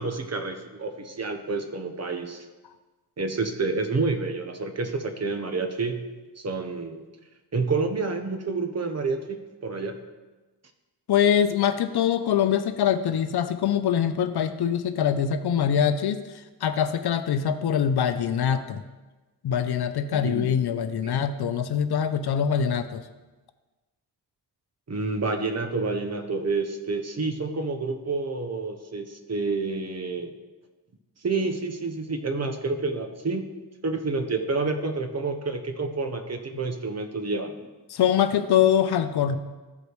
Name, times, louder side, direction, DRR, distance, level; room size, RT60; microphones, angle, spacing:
voice 1, 0.0-2.4 3.2-6.1 6.4-7.0 7.5-10.0 20.1-20.5 21.0-21.1 24.9-30.3 31.2-33.6 33.8-37.6, right 3 dB, 35° right, 6 dB, 1.0 m, -29 dB
voice 2, 11.1-16.2 16.6-18.8 19.4-23.0 37.9-39.4, left 8 dB, 65° left, 10 dB, 0.7 m, -23 dB
14.0 x 5.0 x 3.2 m, 1.2 s
cardioid pair, 75°, 42 cm